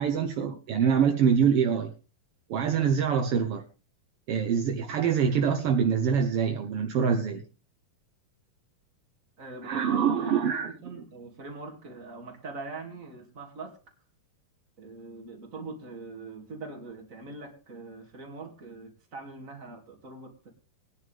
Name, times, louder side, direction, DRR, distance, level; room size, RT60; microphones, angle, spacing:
voice 1, 0.0-1.9 2.5-3.6 4.3-7.4 9.6-10.7, right 7 dB, 70° right, 4 dB, 1.4 m, -25 dB
voice 2, 9.4-13.8 14.8-20.5, right 3 dB, 25° right, 1 dB, 2.5 m, -42 dB
20.0 x 10.0 x 3.5 m, 0.35 s
omnidirectional pair, 4.0 m